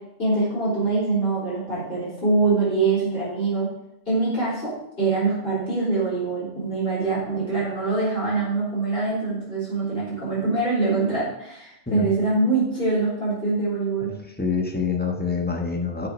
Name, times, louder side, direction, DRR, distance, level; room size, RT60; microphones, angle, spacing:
voice 1, 0.2-3.7 4.1-14.1, right 3 dB, 50° left, -8 dB, 4.1 m, -24 dB
voice 2, 14.4-16.1, left 5 dB, 10° left, 2 dB, 1.2 m, -26 dB
8.5 x 6.4 x 6.4 m, 0.80 s
omnidirectional pair, 1.2 m